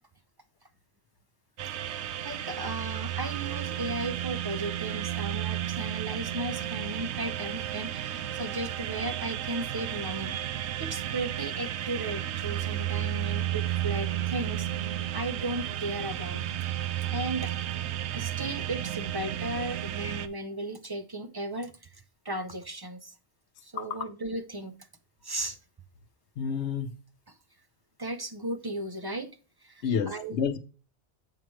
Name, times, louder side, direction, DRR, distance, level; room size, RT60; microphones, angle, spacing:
voice 1, 1.6-10.4 10.8-16.6 16.8-17.5 18.1-23.1 23.6-24.8 25.2-25.6 27.3-27.4 28.0-29.3 29.6-30.4, right 2 dB, 35° right, 0.4 m, -36 dB
sound 1, 1.6-20.3, right 12 dB, 75° right, 0.9 m, -33 dB
voice 2, 23.8-24.1 26.4-26.9 29.8-30.6, left 7 dB, 80° left, 0.9 m, -29 dB
7.4 x 5.6 x 3.1 m
omnidirectional pair, 1.1 m